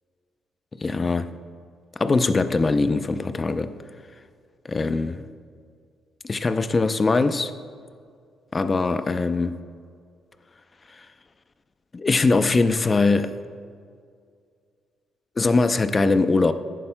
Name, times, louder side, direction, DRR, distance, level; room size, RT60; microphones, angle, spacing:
voice 1, 0.7-1.3 2.0-3.7 4.6-5.3 6.3-7.5 8.5-9.6 11.0-11.1 11.9-13.4 15.4-16.5, left 3 dB, 30° left, 0.5 m, -21 dB
14.0 x 11.0 x 2.2 m
cardioid pair, 90°, 0 cm